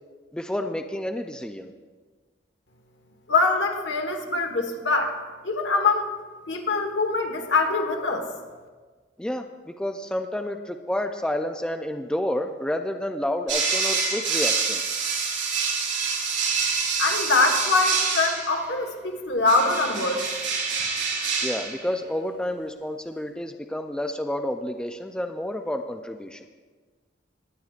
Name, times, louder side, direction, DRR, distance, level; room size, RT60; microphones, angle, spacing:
voice 1, 0.3-1.7 9.2-14.8 21.4-26.4, left 1 dB, 5° left, 5 dB, 0.3 m, -30 dB
voice 2, 3.3-5.2 5.4-6.1 6.5-8.3 17.0-20.2, left 3 dB, 70° left, 4 dB, 1.4 m, -23 dB
sound 1, 13.5-18.6 19.5-21.8, right 5 dB, 80° right, 3.3 m, -26 dB
19.5 x 9.3 x 2.4 m, 1.4 s
head